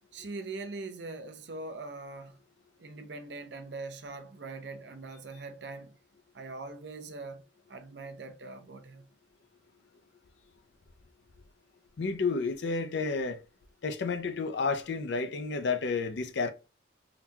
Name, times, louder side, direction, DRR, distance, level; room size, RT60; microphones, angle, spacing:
voice 1, 0.1-2.4 2.8-6.0 6.3-7.4 7.7-9.1, right 3 dB, 60° right, 0.5 m, -42 dB
voice 2, 12.0-13.4 13.8-16.5, left 4 dB, 65° left, 0.5 m, -31 dB
3.8 x 2.2 x 2.8 m
head